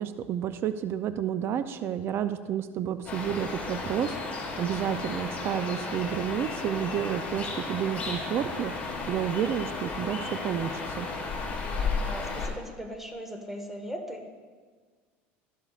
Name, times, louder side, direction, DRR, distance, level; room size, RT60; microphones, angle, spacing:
voice 1, 0.0-8.7 9.1-11.1, right 9 dB, 45° right, 11 dB, 0.5 m, -30 dB
sound 1, 3.1-12.5, left 3 dB, 25° left, 3.4 m, -34 dB
voice 2, 12.0-14.3, equal, 5° right, 4 dB, 1.5 m, -39 dB
13.0 x 11.5 x 2.5 m, 1.5 s
supercardioid pair, 110°, 6 cm